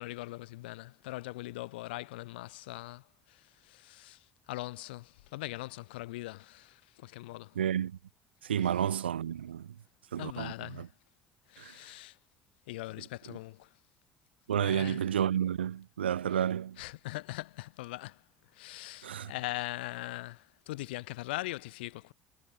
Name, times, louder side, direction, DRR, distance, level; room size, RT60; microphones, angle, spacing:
voice 1, 0.0-7.6 10.2-10.9 11.5-12.2 12.7-13.7 14.6-15.0 16.8-18.2 18.5-22.1, left 19 dB, 70° left, 3.7 m, -41 dB
voice 2, 7.6-8.0 8.4-9.7 10.1-10.9 11.6-11.7 14.5-16.8 19.0-19.3, right 9 dB, 80° right, 0.5 m, -31 dB
figure-of-eight pair, 60°, 6 cm